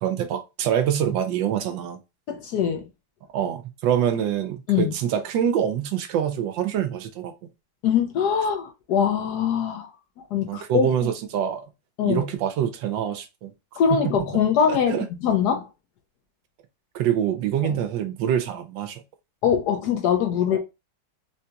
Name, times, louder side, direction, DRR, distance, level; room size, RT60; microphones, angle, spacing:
voice 1, 0.0-2.0 3.3-7.3 10.4-11.7 12.0-13.5 13.9-14.4 14.7-15.1 16.9-19.0 20.5-20.6, right 9 dB, 80° right, 1.3 m, -25 dB
voice 2, 2.3-2.9 4.7-4.9 7.8-9.9 10.2-10.9 12.0-12.3 13.8-15.0 15.2-15.6 17.6-17.8 19.4-20.6, left 8 dB, 70° left, 1.1 m, -22 dB
3.9 x 2.8 x 2.3 m
omnidirectional pair, 2.1 m